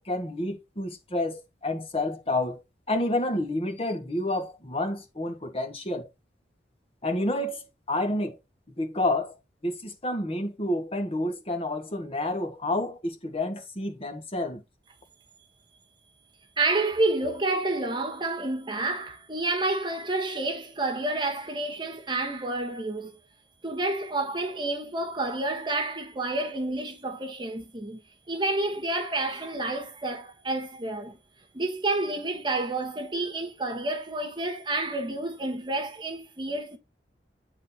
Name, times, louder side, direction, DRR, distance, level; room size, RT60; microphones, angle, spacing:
voice 1, 0.0-2.6 2.9-6.1 7.0-8.4 8.8-9.3 9.6-14.6, left 1 dB, 35° left, 1.6 m, -29 dB
voice 2, 16.6-23.2 23.6-28.0 28.3-31.2 31.5-36.8, right 2 dB, 25° right, 1.4 m, -29 dB
8.9 x 4.1 x 4.3 m
head